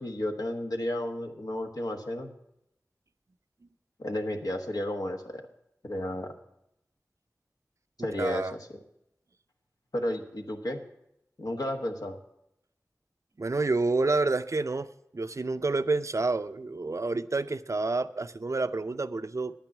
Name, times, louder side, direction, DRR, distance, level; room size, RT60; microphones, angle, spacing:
voice 1, 0.0-2.3 4.0-5.4 5.8-6.3 8.0-8.6 9.9-10.8 11.4-12.2, left 1 dB, 75° left, 3 dB, 1.3 m, -32 dB
voice 2, 8.0-8.5 13.4-14.9 15.1-19.5, right 3 dB, 50° right, 12 dB, 0.5 m, -29 dB
10.0 x 9.0 x 6.0 m, 0.82 s
wide cardioid pair, 45°, 6 cm